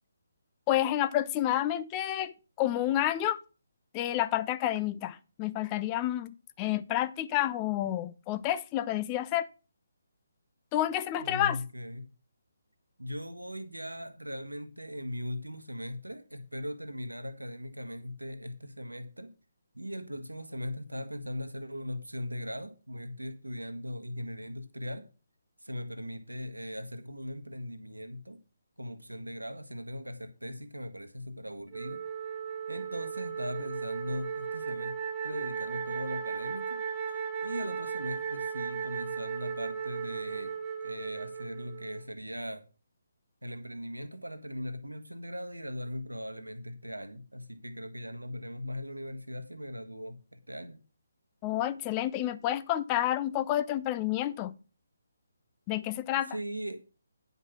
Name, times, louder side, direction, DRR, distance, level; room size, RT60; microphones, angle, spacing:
voice 1, 0.7-3.4 3.9-9.5 10.7-11.6 51.4-54.5 55.7-56.4, left 13 dB, 20° left, 0.5 m, -29 dB
voice 2, 11.2-12.1 13.0-19.3 19.7-25.1 25.6-28.4 28.8-32.0 32.7-34.9 35.2-36.8 37.1-40.5 40.8-42.7 43.4-50.8 56.3-56.8, equal, 80° right, 1.4 m, -39 dB
Wind instrument woodwind instrument, 31.7-42.1, right 6 dB, 20° right, 0.9 m, -36 dB
9.7 x 5.4 x 6.0 m
figure-of-eight pair, 145°, 0 cm